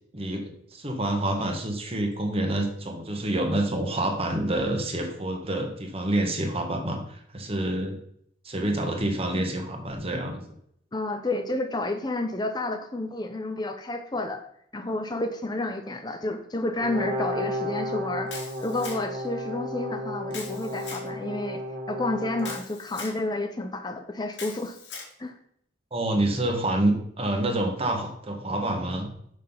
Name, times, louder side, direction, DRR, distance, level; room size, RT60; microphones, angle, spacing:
voice 1, 0.1-8.0 8.4-10.4 25.9-29.1, right 1 dB, 30° right, 3 dB, 1.4 m, -27 dB
voice 2, 10.9-14.4 14.7-24.8 25.2-25.3, left 2 dB, 20° left, 6 dB, 0.6 m, -30 dB
Brass instrument, 16.8-22.6, equal, 50° right, 1.9 m, -33 dB
Camera, 18.3-19.3 20.3-21.1 22.4-23.2 24.3-25.1, left 4 dB, 80° left, 2.5 m, -40 dB
6.5 x 6.0 x 5.4 m, 0.69 s
head